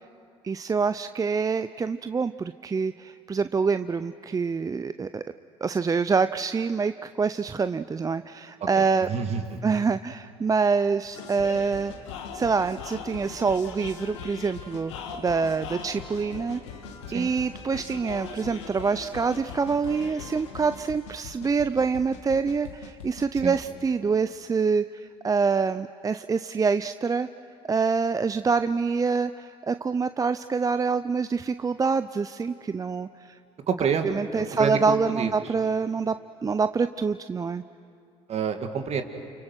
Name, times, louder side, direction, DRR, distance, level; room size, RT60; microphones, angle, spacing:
voice 1, 0.4-5.2 5.6-9.1 9.6-11.9 12.3-14.9 15.2-16.6 17.1-27.3 27.7-33.4 34.0-37.6, right 5 dB, 25° right, 12 dB, 0.6 m, -26 dB
voice 2, 8.8-9.6 17.1-17.3 23.4-23.6 33.7-34.8 35.2-35.3 38.3-39.0, right 6 dB, 45° right, 6 dB, 2.3 m, -28 dB
sound 1, 11.1-23.7, left 6 dB, 85° left, 1.9 m, -40 dB
29.5 x 29.0 x 6.1 m, 2.5 s
hypercardioid pair, 65°, 15 cm